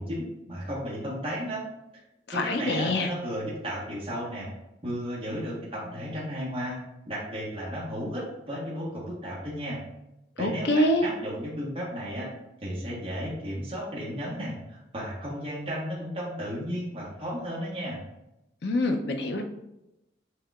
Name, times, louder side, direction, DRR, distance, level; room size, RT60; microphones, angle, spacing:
voice 1, 0.0-1.6 2.3-4.5 4.8-6.8 7.0-9.8 10.4-12.3 12.6-18.0, equal, 30° right, -7 dB, 1.1 m, -34 dB
voice 2, 2.3-3.1 10.4-11.1 18.6-19.4, left 1 dB, 60° left, 5 dB, 0.5 m, -25 dB
6.3 x 2.9 x 2.4 m, 0.89 s
head